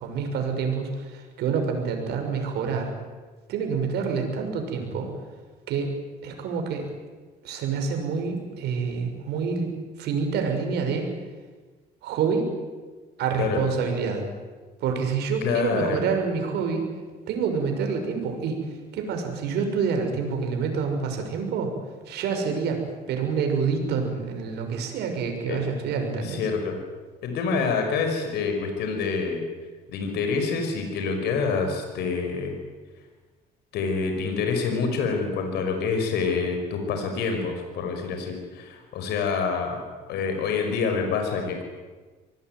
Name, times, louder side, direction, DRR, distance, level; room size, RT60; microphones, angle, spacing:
voice 1, 0.0-2.9 3.5-5.1 5.7-5.9 6.2-6.9 7.4-11.1 12.0-12.5 13.2-14.2 14.8-16.9 17.3-21.7 22.1-22.8 23.1-26.5, right 5 dB, 80° right, 4 dB, 6.3 m, -27 dB
voice 2, 15.4-16.0 25.5-25.6 26.2-26.8 27.2-29.4 29.9-32.5 33.7-39.8 40.1-41.6, left 5 dB, 80° left, 4 dB, 5.5 m, -27 dB
26.0 x 19.5 x 9.5 m, 1.3 s
cardioid pair, 110°, 17 cm